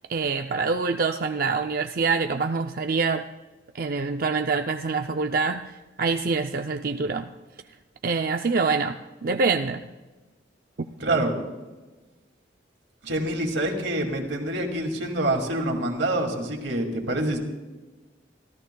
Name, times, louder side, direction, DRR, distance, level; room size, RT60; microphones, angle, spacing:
voice 1, 0.1-3.2 3.7-5.6 6.0-7.3 8.0-9.8, right 4 dB, 50° right, 5 dB, 0.5 m, -25 dB
voice 2, 11.0-11.3 13.0-17.4, right 1 dB, 85° right, 3 dB, 2.3 m, -26 dB
29.5 x 14.0 x 2.3 m, 1.2 s
head